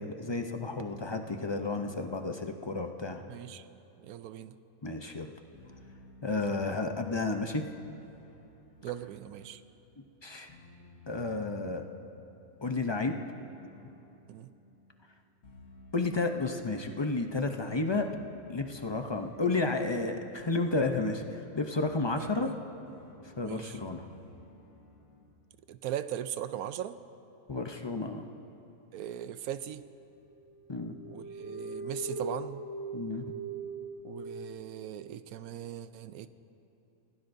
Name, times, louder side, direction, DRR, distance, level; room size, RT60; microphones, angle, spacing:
voice 1, 0.0-3.2 4.8-5.3 6.2-7.7 10.2-10.5 11.1-11.9 12.6-13.2 15.9-18.1 18.5-22.6 23.4-24.1 27.5-28.3 30.7-31.0 32.9-33.2, left 3 dB, 40° left, 5 dB, 0.3 m, -32 dB
voice 2, 3.3-3.7 4.0-4.5 6.3-6.5 8.8-9.6 14.3-14.5 22.1-22.3 23.4-23.8 25.7-27.0 28.9-29.9 31.1-32.6 34.0-36.3, right 11 dB, 80° right, 12 dB, 1.1 m, -39 dB
sound 1, 5.5-25.3, left 2 dB, 85° left, 1.8 m, -57 dB
sound 2, 29.8-29.9 30.5-34.5, right 3 dB, 15° right, 2.1 m, -40 dB
29.5 x 17.0 x 2.6 m, 2.9 s
omnidirectional pair, 1.5 m